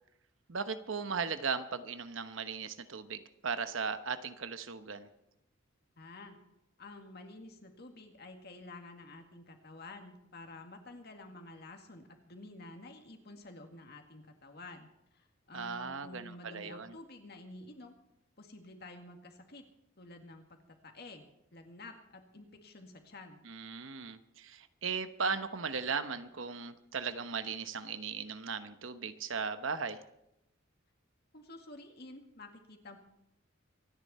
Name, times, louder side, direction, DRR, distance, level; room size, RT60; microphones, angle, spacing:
voice 1, 0.5-5.1 15.5-16.9 23.4-30.0, right 5 dB, 75° right, 11 dB, 1.0 m, -37 dB
voice 2, 6.0-6.4 6.8-14.9 15.1-17.9 18.4-19.7 20.0-21.2 21.5-23.4 31.3-33.0, left 2 dB, 50° left, 4 dB, 2.1 m, -50 dB
25.5 x 10.0 x 4.3 m, 0.85 s
head